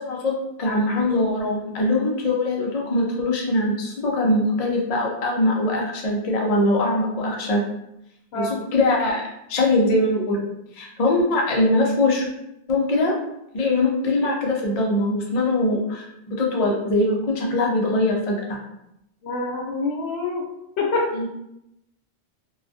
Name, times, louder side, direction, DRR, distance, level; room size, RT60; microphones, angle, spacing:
voice 1, 0.0-7.6 8.3-9.2 9.5-10.4 10.7-12.3 12.7-13.1 13.5-18.6 21.2-21.3, left 2 dB, 50° left, -2 dB, 0.4 m, -22 dB
voice 2, 19.2-20.5 20.8-21.1, left 3 dB, 75° left, 0 dB, 0.8 m, -26 dB
2.3 x 2.1 x 2.6 m, 0.83 s
omnidirectional pair, 1.1 m